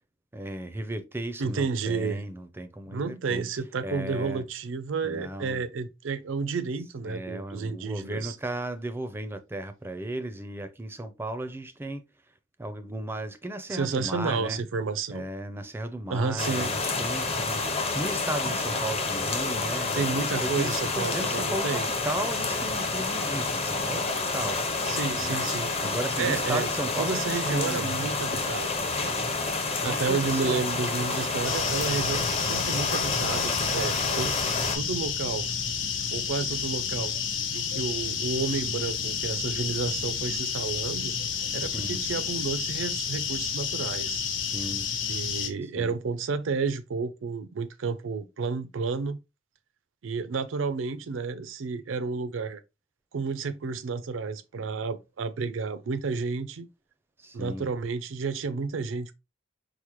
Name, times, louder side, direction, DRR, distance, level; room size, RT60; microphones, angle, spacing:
voice 1, 0.3-3.4 3.8-4.4 5.0-5.6 7.0-12.0 12.6-14.6 15.1-20.1 20.4-24.6 25.1-25.4 25.8-28.2 28.8-29.2 29.8-30.6 41.6-42.0 44.4-44.9 45.7-46.0 57.2-57.7, right 1 dB, 10° right, 0.4 m, -35 dB
voice 2, 1.4-2.2 2.9-8.4 13.7-15.3 16.1-16.7 19.9-21.9 24.9-25.7 26.2-26.7 27.0-28.7 29.8-34.4 34.7-35.5 36.1-37.1 37.5-41.1 41.5-44.2 45.1-49.2 50.0-52.6 53.1-56.7 57.3-59.1, right 4 dB, 85° right, 0.4 m, -31 dB
sound 1, 16.4-34.8, left 3 dB, 30° left, 0.6 m, -29 dB
sound 2, 31.4-45.5, left 6 dB, 75° left, 0.8 m, -30 dB
4.8 x 2.0 x 3.0 m
head